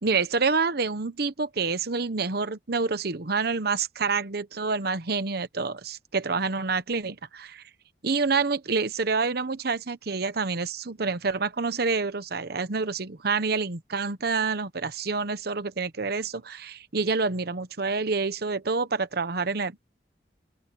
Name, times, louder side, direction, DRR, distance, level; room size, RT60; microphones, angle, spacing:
voice 1, 0.0-7.6 8.0-19.8, right 4 dB, 60° right, 1.0 m, -27 dB
open air
head